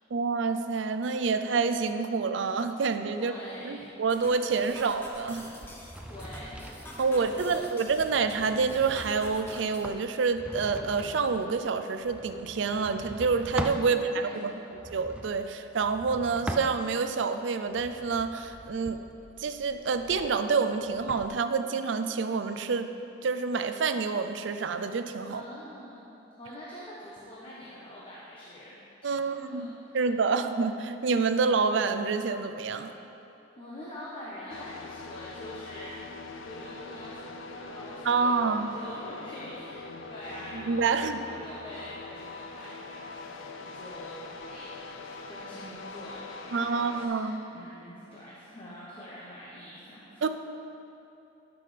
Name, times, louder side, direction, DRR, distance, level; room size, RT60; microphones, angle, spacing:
voice 1, 0.1-3.3 3.6-5.4 7.0-14.1 14.4-14.5 14.9-19.0 19.4-22.9 23.2-25.4 29.0-32.9 38.0-38.7 40.7-41.2 46.5-47.4 50.2-50.3, right 4 dB, 70° right, 9 dB, 0.4 m, -28 dB
voice 2, 3.1-3.9 6.1-6.6 7.0-7.8 13.8-14.8 25.3-26.1 26.4-28.8 29.0-30.0 33.6-36.0 36.4-50.3, left 1 dB, 30° left, -7 dB, 1.0 m, -45 dB
sound 1, 4.1-9.8, left 1 dB, 10° left, 0.8 m, -47 dB
sound 2, 5.5-13.9 14.7-17.2 17.6-21.3, right 1 dB, 5° right, 0.3 m, -42 dB
sound 3, 34.5-47.1, left 3 dB, 90° left, 0.5 m, -43 dB
12.0 x 6.1 x 3.3 m, 3.0 s
head